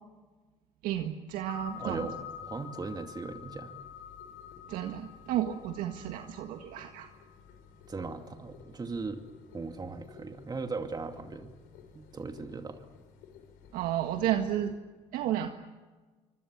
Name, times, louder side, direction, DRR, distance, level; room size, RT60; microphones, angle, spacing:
voice 1, 0.8-2.1 4.7-7.1 13.7-14.7 15.1-15.5, right 11 dB, 70° right, 5 dB, 1.8 m, -32 dB
sound 1, 1.5-14.7, left 8 dB, 75° left, 5.7 m, -49 dB
voice 2, 1.8-3.7 7.9-9.2 9.5-11.5 11.9-12.8, right 4 dB, 25° right, 5 dB, 2.4 m, -38 dB
26.0 x 25.5 x 7.6 m, 1.3 s
hypercardioid pair, 65°, 15 cm